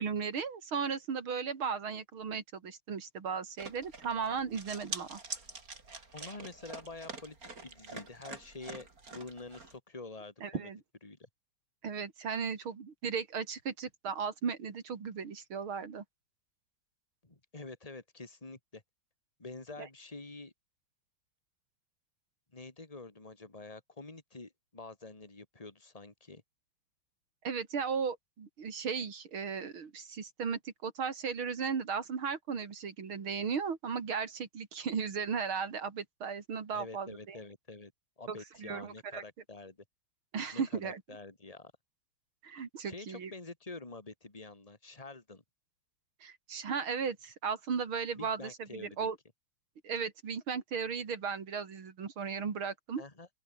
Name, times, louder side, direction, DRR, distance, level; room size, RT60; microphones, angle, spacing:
voice 1, 0.0-5.2 10.4-10.8 11.8-16.0 19.8-19.9 27.4-37.4 38.3-39.2 40.3-41.0 42.4-43.3 46.2-49.2 49.8-53.0, right 6 dB, 85° right, 3.4 m, -36 dB
sound 1, 3.6-9.8, right 3 dB, 45° right, 4.0 m, -45 dB
voice 2, 6.1-7.4 7.6-10.7 11.0-11.3 17.2-18.8 19.4-20.5 22.5-26.4 36.7-37.9 38.2-39.8 40.5-41.7 42.8-45.4 48.1-49.1 53.0-53.3, left 3 dB, 15° left, 2.8 m, -47 dB
open air
omnidirectional pair, 2.2 m